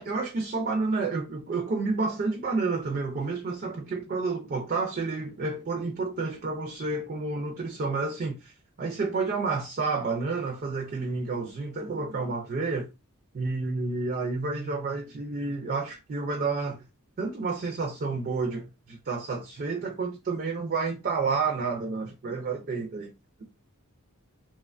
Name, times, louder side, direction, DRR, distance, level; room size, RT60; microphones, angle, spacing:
voice 1, 0.0-12.9 13.3-16.8 17.2-23.1, right 4 dB, 40° right, 0.4 m, -30 dB
2.8 x 2.2 x 2.4 m
head